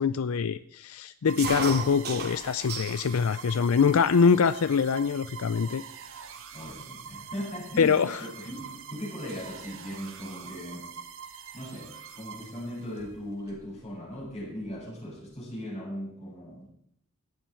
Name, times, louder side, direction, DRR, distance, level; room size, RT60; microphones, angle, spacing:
voice 1, 0.0-5.8 7.8-8.2, left 6 dB, 70° left, 15 dB, 0.5 m, -24 dB
sound 1, 1.3-13.1, right 7 dB, 65° right, 1.5 m, -45 dB
sound 2, 1.4-3.1 3.5-4.2 4.9-5.0 5.2-5.6 6.2-6.3 6.6-8.8 9.1-9.4 10.7-11.0 12.1-12.2 12.4-12.5 12.8-13.7, right 4 dB, 50° right, 3.2 m, -37 dB
voice 2, 6.5-10.9 11.5-16.7, equal, 30° left, -3 dB, 7.2 m, -38 dB
17.5 x 12.5 x 4.4 m, 0.70 s
head